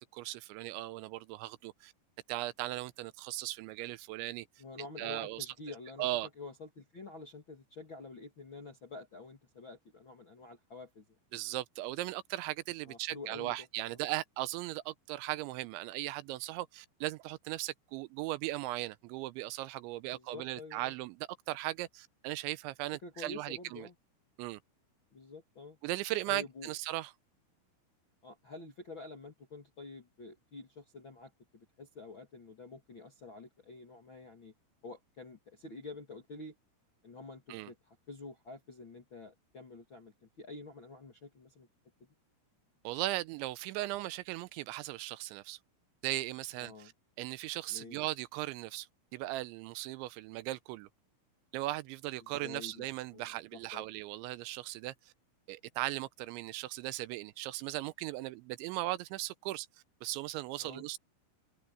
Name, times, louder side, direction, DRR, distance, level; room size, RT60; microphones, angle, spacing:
voice 1, 0.0-1.9 2.3-4.5 5.0-5.5 6.0-6.3 11.3-23.9 24.4-24.6 25.8-27.1 37.5-37.7 42.8-45.6 46.0-46.9 47.2-48.9 49.1-50.9 51.5-54.9 55.5-59.7 60.0-61.0, right 17 dB, 85° right, 2.7 m, -38 dB
voice 2, 4.6-6.1 6.4-11.0 12.8-13.6 13.9-14.0 20.0-20.9 23.0-23.9 25.1-25.8 26.3-26.7 28.2-34.5 34.8-36.5 37.0-41.7 46.6-46.9 47.7-48.0 52.2-53.8 60.6-60.8, left 3 dB, 55° left, 1.3 m, -48 dB
omnidirectional pair, 5.9 m